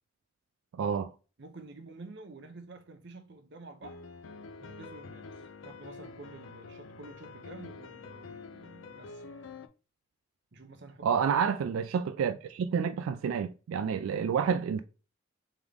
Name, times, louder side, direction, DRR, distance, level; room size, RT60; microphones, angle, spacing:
voice 1, 0.7-1.1 11.0-14.8, right 7 dB, 90° right, 0.3 m, -29 dB
voice 2, 1.4-4.0 4.6-9.2 10.5-11.7, right 3 dB, 60° right, 0.7 m, -49 dB
sound 1, 3.8-9.7, left 4 dB, 75° left, 0.4 m, -47 dB
3.5 x 3.5 x 3.4 m
head